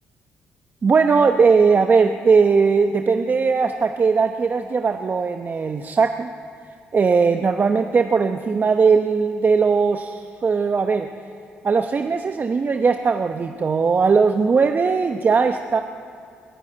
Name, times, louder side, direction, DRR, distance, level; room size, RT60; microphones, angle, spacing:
voice 1, 0.8-6.3 6.9-11.1 11.6-15.8, right 5 dB, 40° right, 6 dB, 0.9 m, -19 dB
22.5 x 13.0 x 9.0 m, 2.3 s
supercardioid pair, 55°, 5 cm